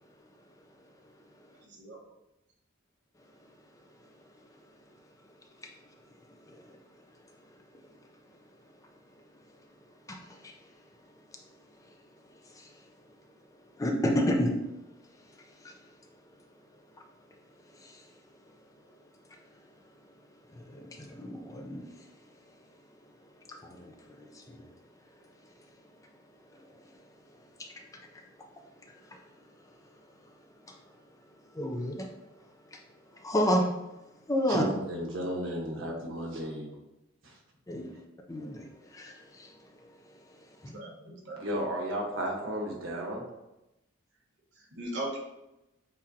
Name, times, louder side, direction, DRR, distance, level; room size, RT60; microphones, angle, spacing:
voice 1, 1.6-2.0 40.7-41.4 44.5-45.2, right 1 dB, 60° right, 1.2 m, -39 dB
voice 2, 6.5-7.0 7.4-7.9 10.1-10.7 11.0-11.4 11.8-12.0 12.3-12.9 13.7-14.6 15.2-15.8 17.0-17.1 17.6-18.1 18.9-19.0 19.3-19.4 20.5-22.1 23.5-24.7 25.4-25.7 26.5-27.0 27.6-28.5 28.7-29.3 29.6-29.7 30.2-30.3 30.7-30.8 31.5-32.4 32.7-32.8 33.1-33.9 34.3-34.6 37.7-38.0 38.3-40.7, equal, 15° left, 0.5 m, -34 dB
voice 3, 34.5-36.8 37.2-37.4 41.4-43.2, equal, 85° right, 1.2 m, -33 dB
7.3 x 2.6 x 2.7 m
head